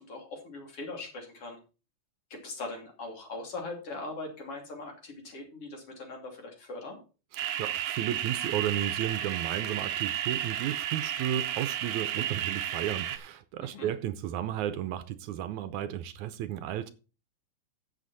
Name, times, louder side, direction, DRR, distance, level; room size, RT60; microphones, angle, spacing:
voice 1, 0.0-1.6 2.3-7.0 13.6-13.9, left 3 dB, 50° left, 3.7 m, -41 dB
voice 2, 7.3-16.9, right 11 dB, 80° right, 2.0 m, -33 dB
sound 1, 7.4-13.2, right 11 dB, 65° right, 1.6 m, -32 dB
11.5 x 8.2 x 4.1 m
omnidirectional pair, 3.6 m